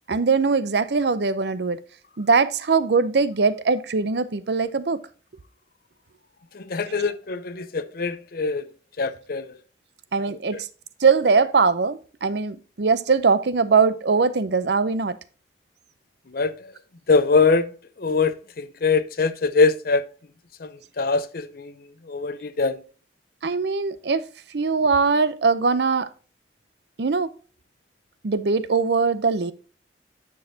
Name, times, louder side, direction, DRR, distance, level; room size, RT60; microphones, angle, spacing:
voice 1, 0.1-1.8 2.2-5.0 10.1-10.7 11.0-15.2 23.4-24.3 24.5-26.1 27.0-27.3 28.2-29.5, right 4 dB, 65° right, 0.6 m, -21 dB
voice 2, 6.5-8.6 9.0-9.5 16.3-16.7 17.1-17.7 18.0-20.0 20.6-21.7 22.1-22.8, left 4 dB, 55° left, 0.6 m, -23 dB
9.6 x 6.3 x 2.7 m
head